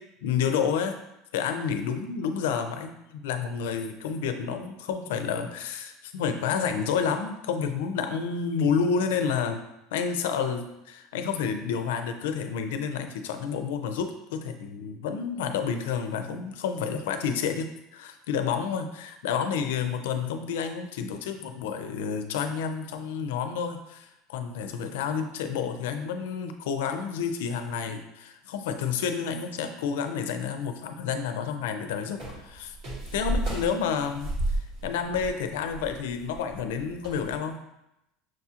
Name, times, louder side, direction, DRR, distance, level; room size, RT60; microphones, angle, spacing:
voice 1, 0.2-1.0 1.3-9.6 9.9-32.8 33.1-37.6, left 6 dB, 90° left, 7 dB, 0.4 m, -30 dB
sound 1, 32.2-37.3, right 1 dB, 55° right, 1.5 m, -32 dB
6.1 x 2.4 x 2.8 m, 0.87 s
supercardioid pair, 140°, 0 cm